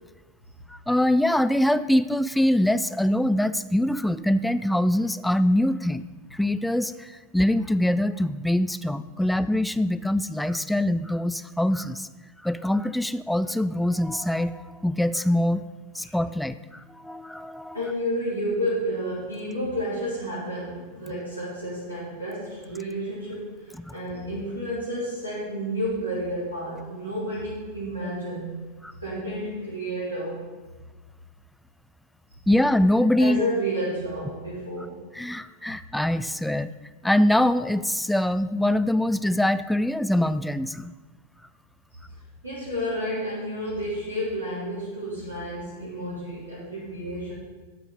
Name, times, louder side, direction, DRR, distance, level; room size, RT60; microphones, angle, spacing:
voice 1, 0.7-12.1 12.4-15.7 15.9-17.8 23.8-23.9 28.8-28.9 32.5-33.4 35.2-36.7 37.0-40.9, left 1 dB, 5° left, 13 dB, 0.3 m, -24 dB
voice 2, 17.7-28.6 29.0-30.5 33.1-35.0 41.9-42.0 42.4-47.3, equal, 80° right, -10 dB, 3.1 m, -31 dB
12.0 x 4.5 x 5.3 m, 1.3 s
figure-of-eight pair, 90°, 0 cm